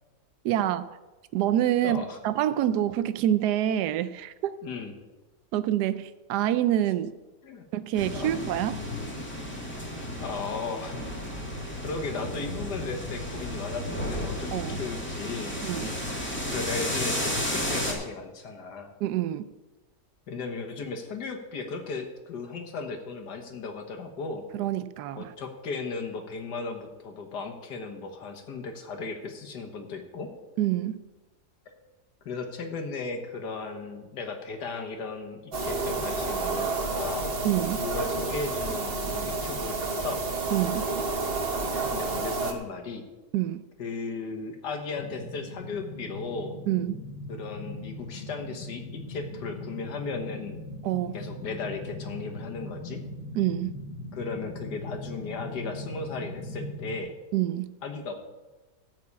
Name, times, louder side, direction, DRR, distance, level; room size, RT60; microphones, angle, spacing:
voice 1, 0.4-0.8 1.3-4.6 5.5-7.1 7.7-8.8 14.5-14.8 15.6-15.9 19.0-19.5 24.5-25.3 30.6-31.0 37.4-37.8 40.5-40.9 43.3-43.6 46.7-47.0 50.8-51.1 53.3-53.7 57.3-57.7, right 12 dB, 75° right, 1.1 m, -26 dB
voice 2, 1.8-2.2 4.6-4.9 7.4-7.7 8.1-8.4 10.2-11.0 11.8-15.6 16.5-18.9 20.3-24.5 25.2-30.3 32.3-37.3 37.8-40.2 41.9-43.1 43.8-46.6 47.3-50.6 51.1-53.0 54.1-57.1 57.8-58.1, left 4 dB, 80° left, 1.9 m, -36 dB
sound 1, 7.9-17.9, left 1 dB, 5° left, 1.9 m, -33 dB
sound 2, 35.5-42.5, right 3 dB, 40° right, 1.2 m, -30 dB
sound 3, 45.0-57.0, left 1 dB, 60° left, 1.5 m, -39 dB
13.0 x 4.7 x 8.5 m
omnidirectional pair, 1.8 m